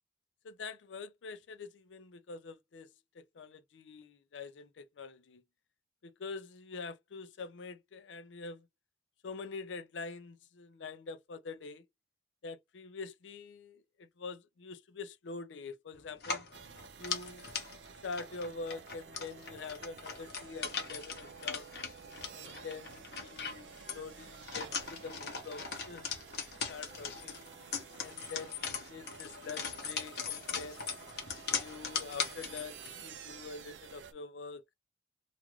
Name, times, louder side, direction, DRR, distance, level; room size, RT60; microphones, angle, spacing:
voice 1, 0.4-2.9 3.1-5.4 6.0-8.7 9.2-11.8 12.4-16.5 17.0-17.5 18.0-21.7 22.3-26.1 26.7-27.4 28.0-30.9 31.6-34.6, left 4 dB, 90° left, 0.5 m, -45 dB
sound 1, 16.2-32.9, left 6 dB, 60° left, 0.9 m, -40 dB
sound 2, 16.5-34.1, right 6 dB, 85° right, 0.5 m, -52 dB
2.5 x 2.3 x 3.0 m
head